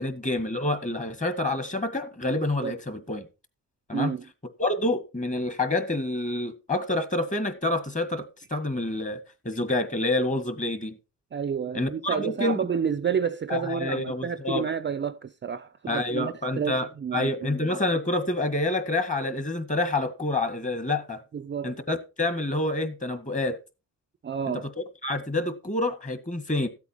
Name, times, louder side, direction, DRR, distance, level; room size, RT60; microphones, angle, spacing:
voice 1, 0.0-3.3 3.9-4.1 4.6-9.2 9.4-11.0 11.7-12.6 13.5-14.6 15.9-16.9 17.1-21.2 21.6-23.6 25.0-26.7, left 2 dB, 20° left, 1.9 m, -27 dB
voice 2, 3.9-4.3 11.3-17.5 21.3-21.8 24.2-24.7, right 7 dB, 35° right, 0.5 m, -30 dB
14.0 x 8.2 x 4.4 m
cardioid pair, 110°, 34 cm